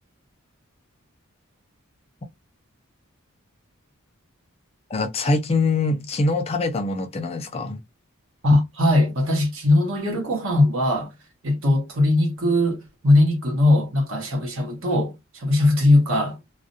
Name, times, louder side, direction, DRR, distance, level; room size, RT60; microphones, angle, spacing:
voice 1, 4.9-7.8, left 3 dB, 30° left, 0.4 m, -24 dB
voice 2, 8.4-11.1 11.4-16.4, left 1 dB, 65° right, 0.9 m, -20 dB
2.4 x 2.0 x 2.5 m
head